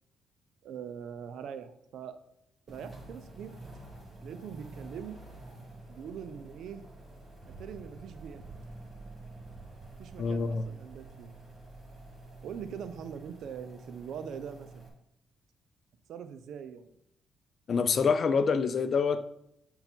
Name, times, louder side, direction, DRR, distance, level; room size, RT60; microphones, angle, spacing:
voice 1, 0.6-2.2 2.7-3.5 4.2-5.2 5.9-6.8 7.5-8.4 10.0-11.4 12.4-14.8 16.1-16.9, right 7 dB, 75° right, 0.6 m, -42 dB
sound 1, 2.7-14.9, right 2 dB, 20° right, 2.0 m, -49 dB
sound 2, 7.4-14.3, right 3 dB, 45° right, 1.2 m, -53 dB
voice 2, 10.2-10.6 17.7-19.2, left 5 dB, 50° left, 0.5 m, -26 dB
6.9 x 3.8 x 4.4 m
cardioid pair, 90°, 0 cm